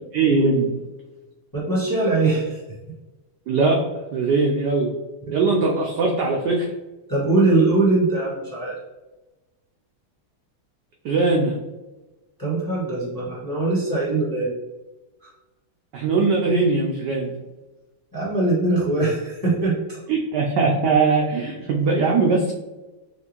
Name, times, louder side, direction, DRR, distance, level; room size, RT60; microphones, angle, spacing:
voice 1, 0.1-0.8 3.5-3.8 4.1-4.9 5.3-6.7 11.0-11.6 15.9-17.3 20.1-22.5, right 3 dB, 80° right, 0 dB, 0.9 m, -20 dB
voice 2, 1.5-2.6 5.2-5.3 7.1-8.7 12.4-14.5 15.2-15.3 18.1-20.0, right 2 dB, 15° left, -7 dB, 0.8 m, -21 dB
5.7 x 2.5 x 2.9 m, 1.1 s
omnidirectional pair, 2.4 m